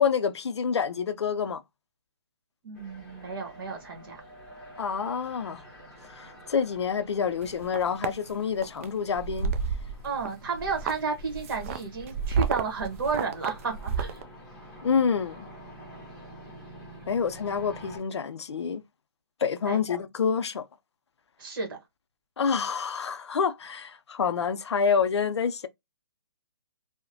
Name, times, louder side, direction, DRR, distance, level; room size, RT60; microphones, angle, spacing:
voice 1, 0.0-1.6 4.8-5.6 6.2-9.5 14.8-15.5 17.1-18.8 19.4-20.6 22.4-25.7, left 6 dB, 85° left, 0.4 m, -27 dB
voice 2, 2.6-4.2 10.0-14.2 19.6-19.8 21.4-21.8, right 4 dB, 55° right, 1.1 m, -32 dB
sound 1, 2.7-18.0, equal, 5° left, 0.9 m, -48 dB
sound 2, 7.4-8.1 8.6-8.9 9.1-10.3 10.5-14.2, right 6 dB, 30° right, 0.3 m, -30 dB
2.8 x 2.1 x 2.6 m
hypercardioid pair, 150°, 14 cm